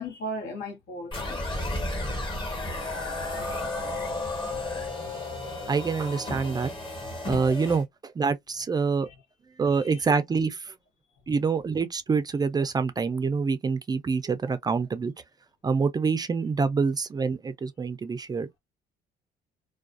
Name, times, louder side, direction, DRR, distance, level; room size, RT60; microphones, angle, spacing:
voice 1, 0.0-1.4 3.5-3.9 9.0-9.1 9.7-10.0, equal, 75° left, 1.2 m, -37 dB
sound 1, 1.1-7.8, left 2 dB, 30° left, 1.2 m, -33 dB
voice 2, 5.7-6.7 7.2-9.1 9.6-10.7 11.3-15.1 15.6-18.6, right 5 dB, 25° right, 0.4 m, -26 dB
2.3 x 2.3 x 2.4 m
cardioid pair, 110°, 17 cm